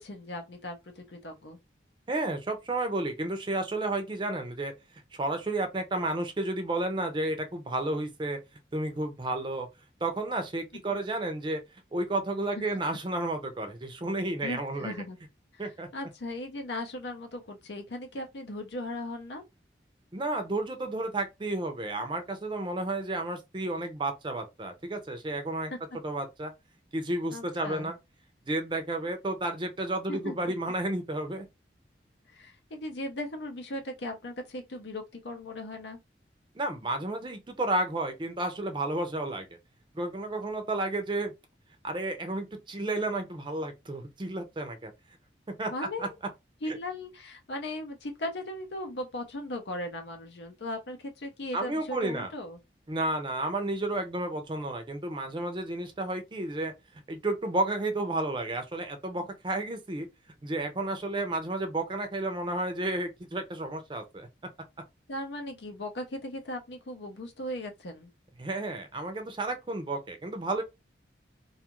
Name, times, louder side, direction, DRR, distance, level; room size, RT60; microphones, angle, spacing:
voice 1, 0.0-1.6 14.4-15.2 15.5-19.4 25.7-25.8 27.3-27.9 30.1-30.3 32.3-36.0 45.7-46.1 46.6-52.6 59.2-59.3 65.1-68.1, left 1 dB, 75° left, 0.6 m, -38 dB
voice 2, 2.1-4.7 5.2-8.4 8.7-9.7 10.0-11.6 11.9-14.9 15.6-15.9 20.1-25.7 26.0-26.5 26.9-28.0 28.5-31.5 36.5-39.5 39.9-41.3 41.8-44.9 45.5-45.7 46.0-46.1 46.7-46.8 51.5-52.3 52.9-56.7 57.1-60.1 60.4-64.3 68.4-70.6, right 2 dB, 25° right, 0.5 m, -32 dB
2.6 x 2.4 x 2.9 m
head